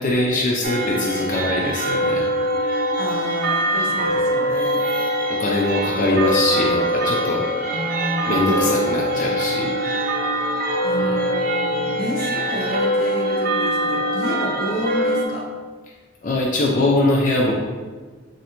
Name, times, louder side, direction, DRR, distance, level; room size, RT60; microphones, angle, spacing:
voice 1, 0.0-2.2 5.3-7.4 8.3-9.7 11.0-11.1 16.2-17.5, left 2 dB, 40° left, -3 dB, 0.4 m, -21 dB
sound 1, 0.6-15.2, equal, 45° right, 0.4 m, -23 dB
voice 2, 3.0-4.8 7.7-8.4 10.5-15.4, left 1 dB, 75° left, -1 dB, 0.8 m, -30 dB
3.2 x 2.6 x 4.3 m, 1.4 s
head